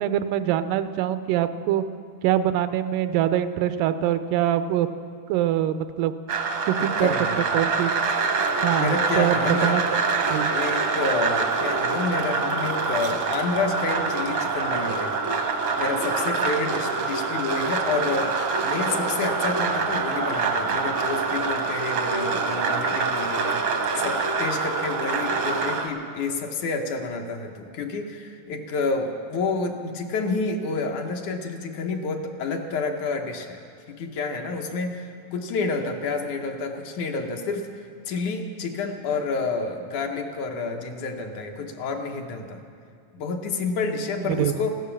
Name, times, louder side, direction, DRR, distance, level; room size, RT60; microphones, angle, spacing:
voice 1, 0.0-1.8 2.2-4.9 5.3-6.1 6.7-7.1 7.5-8.0 8.6-9.8 10.3-10.6 44.2-44.5, right 11 dB, 85° right, 12 dB, 2.2 m, -24 dB
sound 1, 6.3-25.9, right 4 dB, 65° right, 1.2 m, -25 dB
voice 2, 6.8-7.4 8.8-9.9 10.5-15.2 15.8-33.6 34.0-37.7 38.1-42.6 43.1-44.7, left 3 dB, 70° left, 3 dB, 2.3 m, -29 dB
16.0 x 12.0 x 7.1 m, 2.3 s
omnidirectional pair, 3.8 m